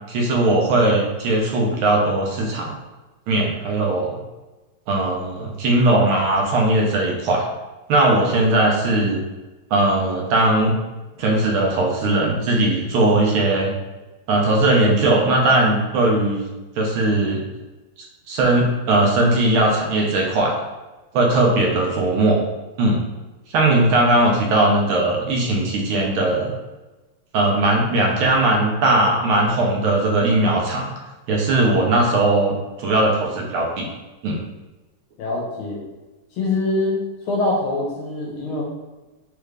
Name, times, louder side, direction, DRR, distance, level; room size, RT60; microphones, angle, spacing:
voice 1, 0.1-2.8 3.3-4.1 4.9-7.4 7.9-9.2 9.7-10.7 11.2-13.7 14.3-16.4 16.8-17.4 18.3-20.5 21.1-22.4 22.8-23.0 23.5-26.5 27.3-30.9 31.3-33.9 34.2-34.4, right 2 dB, 75° right, -1 dB, 1.5 m, -19 dB
voice 2, 35.2-35.8 36.3-37.0 37.2-38.6, left 2 dB, 75° left, -3 dB, 1.7 m, -23 dB
4.3 x 2.4 x 3.2 m, 1.1 s
omnidirectional pair, 2.4 m